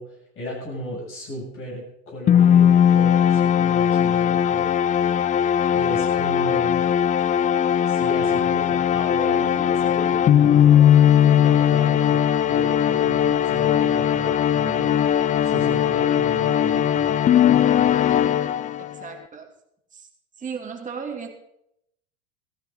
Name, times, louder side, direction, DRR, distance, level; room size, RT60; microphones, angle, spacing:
voice 1, 0.0-4.7 5.7-6.9 7.9-14.9 15.4-17.2, equal, 40° left, -3 dB, 7.2 m, -35 dB
sound 1, 2.3-19.0, left 9 dB, 25° left, 0.4 m, -19 dB
voice 2, 18.8-19.5 19.9-20.1 20.4-21.3, right 6 dB, 20° right, 0 dB, 2.9 m, -35 dB
16.5 x 14.0 x 3.9 m, 0.76 s
hypercardioid pair, 105°, 34 cm